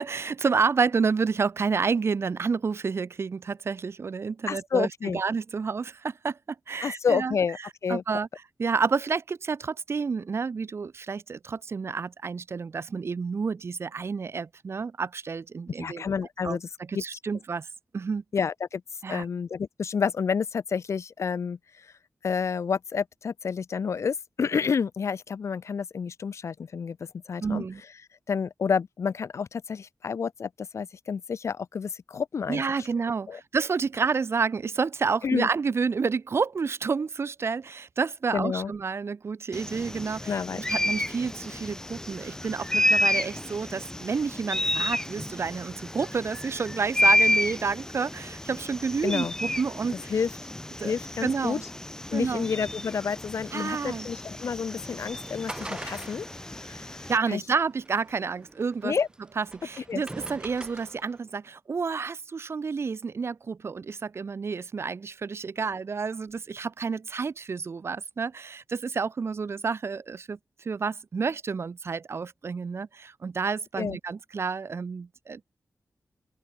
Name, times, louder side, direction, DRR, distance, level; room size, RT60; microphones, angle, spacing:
voice 1, 0.0-6.4 6.7-7.4 7.9-8.3 8.6-16.0 16.4-16.6 16.9-17.7 17.9-18.2 19.0-19.2 27.4-27.8 32.5-50.1 50.8-50.9 51.2-51.6 52.1-52.5 53.5-54.1 57.1-58.9 59.4-70.4 70.6-75.4, right 5 dB, 60° right, 3.2 m, -29 dB
voice 2, 4.5-5.2 6.8-7.6 7.8-8.0 15.8-16.7 16.9-17.0 18.3-18.8 19.1-21.9 22.2-27.0 27.3-27.6 28.3-32.9 33.3-33.4 35.2-35.5 38.3-38.7 40.2-40.6 49.0-49.3 50.1-50.3 50.8-51.6 52.1-57.4 58.8-59.1 59.9-60.0 73.8-74.0, left 6 dB, 75° left, 1.1 m, -29 dB
sound 1, 39.5-57.2, left 1 dB, 10° left, 2.4 m, -30 dB
sound 2, 54.5-61.2, right 2 dB, 15° right, 4.4 m, -44 dB
open air
wide cardioid pair, 135°, 5 cm